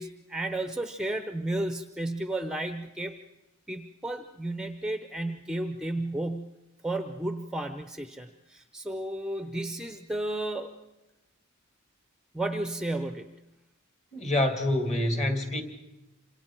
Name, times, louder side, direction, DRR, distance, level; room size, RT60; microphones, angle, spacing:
voice 1, 0.0-3.2 3.7-6.5 6.8-10.7 12.3-13.3, right 1 dB, 5° right, 7 dB, 0.7 m, -33 dB
voice 2, 14.1-15.6, left 1 dB, 35° left, 5 dB, 2.2 m, -26 dB
27.5 x 26.5 x 4.5 m, 1.0 s
head